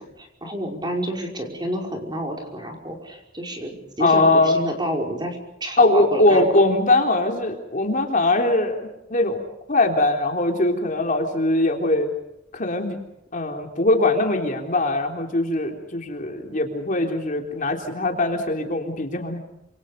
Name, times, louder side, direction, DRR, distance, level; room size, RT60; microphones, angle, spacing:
voice 1, 0.0-6.5, equal, 25° right, 2 dB, 5.4 m, -29 dB
voice 2, 4.0-4.6 5.8-12.1 12.5-13.0 13.3-19.4, left 2 dB, 45° left, 3 dB, 3.6 m, -21 dB
27.5 x 27.5 x 5.4 m, 0.85 s
head